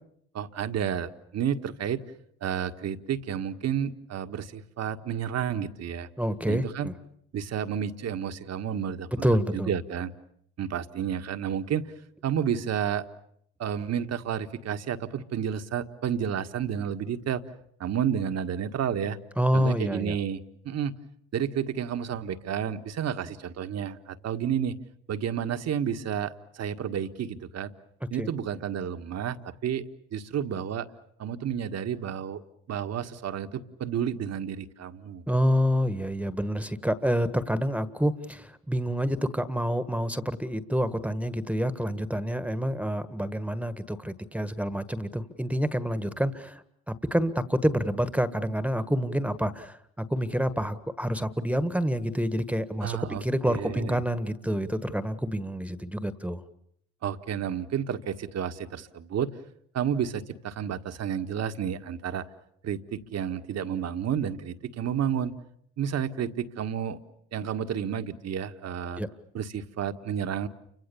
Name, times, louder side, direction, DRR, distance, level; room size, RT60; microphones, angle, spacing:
voice 1, 0.3-2.0 2.4-6.1 6.5-6.9 7.3-9.3 9.5-10.1 10.6-11.9 12.2-13.0 13.6-17.4 17.8-19.2 19.5-20.9 21.3-24.7 25.1-27.7 28.1-29.8 30.1-30.9 31.2-32.4 32.7-35.2 52.8-54.0 57.0-59.3 59.7-62.2 62.6-65.3 65.8-67.0 67.3-69.0 69.3-70.5, right 8 dB, 55° right, 9 dB, 1.7 m, -31 dB
voice 2, 6.2-6.9 9.2-9.7 19.4-20.2 28.2-28.3 35.3-56.4 69.0-69.1, equal, 5° right, 13 dB, 1.6 m, -28 dB
29.5 x 25.5 x 7.1 m, 0.70 s
hypercardioid pair, 65°, 31 cm